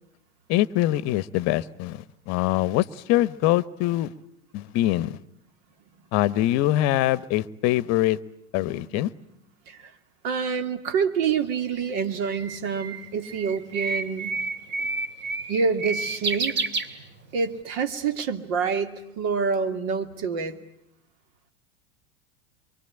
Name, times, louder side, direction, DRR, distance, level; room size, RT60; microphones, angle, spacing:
voice 1, 0.5-4.1 4.5-5.2 6.1-8.2 8.5-9.1, left 15 dB, 45° left, 19 dB, 1.0 m, -23 dB
voice 2, 8.6-9.2 9.7-9.9 10.2-14.4 15.5-16.6 17.3-20.6, right 5 dB, 55° right, 9 dB, 2.5 m, -27 dB
Bird, 11.3-17.5, right 3 dB, 30° right, 2.7 m, -31 dB
25.0 x 24.0 x 9.8 m, 0.76 s
hypercardioid pair, 90°, 37 cm